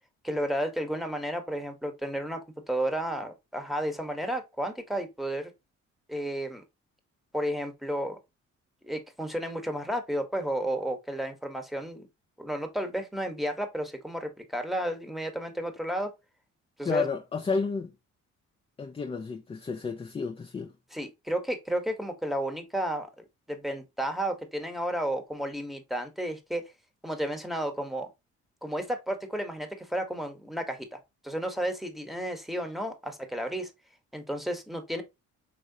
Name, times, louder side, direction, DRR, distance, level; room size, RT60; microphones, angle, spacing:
voice 1, 0.2-2.4 2.7-5.5 6.1-6.6 7.3-8.2 8.8-12.1 12.4-16.1 16.8-17.1 20.9-26.6 27.0-28.1 28.6-31.0 31.2-33.7 34.1-35.0, right 1 dB, ahead, 1.0 m, -32 dB
voice 2, 16.8-17.9 18.8-20.7, left 5 dB, 20° left, 0.4 m, -31 dB
4.8 x 3.1 x 2.7 m
cardioid pair, 90°, 30 cm